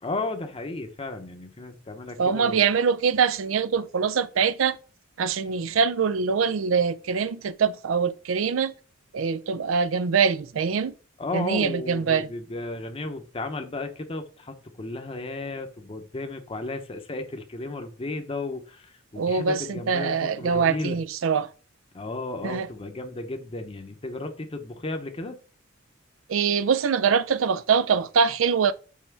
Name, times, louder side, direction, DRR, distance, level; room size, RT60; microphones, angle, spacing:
voice 1, 0.0-2.6 11.2-21.0 21.9-25.4, left 2 dB, 30° left, 0.7 m, -34 dB
voice 2, 2.2-4.8 5.2-8.7 9.1-10.9 11.3-12.3 19.2-21.5 22.4-22.7 26.3-28.7, right 6 dB, 85° right, 0.5 m, -23 dB
5.6 x 4.3 x 4.5 m
head